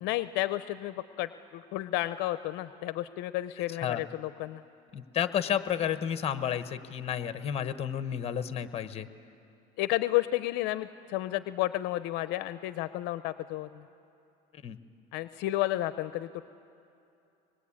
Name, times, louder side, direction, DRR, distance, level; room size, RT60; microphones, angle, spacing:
voice 1, 0.0-4.6 9.8-13.8 15.1-16.5, left 16 dB, 70° left, 13 dB, 0.6 m, -32 dB
voice 2, 4.9-9.1 14.6-14.8, left 9 dB, 35° left, 11 dB, 1.1 m, -31 dB
24.5 x 21.0 x 8.6 m, 2.7 s
cardioid pair, 125°, 19 cm